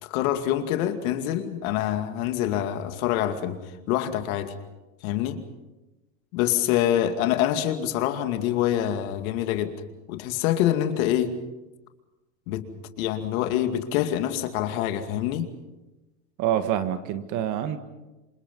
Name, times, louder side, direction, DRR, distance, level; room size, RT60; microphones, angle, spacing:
voice 1, 0.0-3.6 3.9-4.6 5.0-5.4 6.3-9.8 10.1-11.3 12.5-12.7 13.0-15.5, left 11 dB, 60° left, 7 dB, 2.4 m, -25 dB
voice 2, 16.4-17.8, right 10 dB, 40° right, 10 dB, 1.7 m, -26 dB
27.5 x 25.5 x 5.5 m, 1.1 s
supercardioid pair, 155°, 48 cm